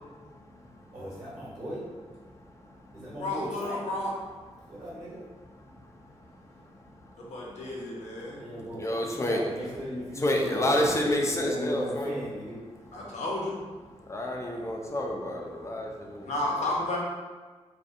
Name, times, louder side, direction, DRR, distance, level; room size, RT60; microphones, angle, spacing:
voice 1, 0.9-1.8 2.9-3.8 4.6-5.2 8.3-10.9 11.3-12.6, equal, 45° right, -9 dB, 1.2 m, -37 dB
voice 2, 3.2-4.1 7.2-8.4 12.9-13.6 16.2-17.0, left 2 dB, 75° left, -3 dB, 0.6 m, -32 dB
voice 3, 8.8-9.4 10.2-12.1 14.0-16.5, left 1 dB, 25° left, 0 dB, 0.4 m, -29 dB
2.6 x 2.3 x 2.5 m, 1.4 s
cardioid pair, 80°, 12 cm